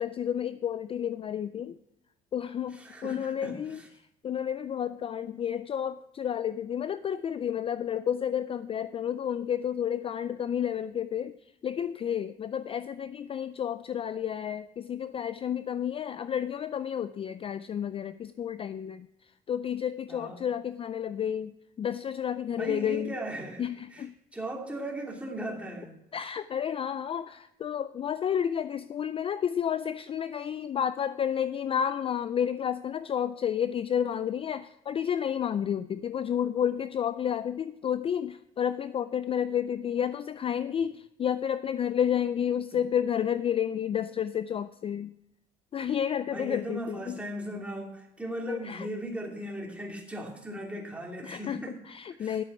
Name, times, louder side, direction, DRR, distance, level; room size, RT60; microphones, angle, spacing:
voice 1, 0.0-1.8 2.3-3.8 4.2-11.4 11.6-23.1 23.6-24.1 26.1-45.1 45.7-47.2 48.5-48.9 51.2-52.4, left 9 dB, 35° left, 14 dB, 0.4 m, -31 dB
voice 2, 2.7-3.9 20.1-20.4 22.5-23.6 23.9-24.1 24.3-26.0 42.7-42.8 46.3-51.8 52.2-52.4, right 1 dB, 5° right, -1 dB, 2.9 m, -38 dB
11.5 x 7.7 x 6.1 m, 0.83 s
cardioid pair, 110°, 17 cm